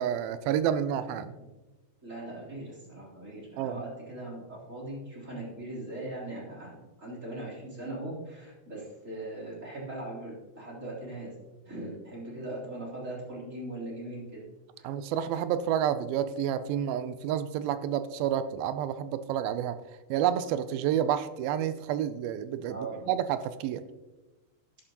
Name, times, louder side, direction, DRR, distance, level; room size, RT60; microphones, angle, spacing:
voice 1, 0.0-1.3 3.6-3.8 14.8-19.8 20.1-23.8, right 10 dB, 80° right, 12 dB, 2.3 m, -29 dB
voice 2, 2.0-11.4 11.6-14.4 14.8-14.9 22.7-23.1, right 1 dB, 20° right, -5 dB, 3.4 m, -40 dB
13.0 x 10.5 x 2.9 m, 1.1 s
omnidirectional pair, 4.4 m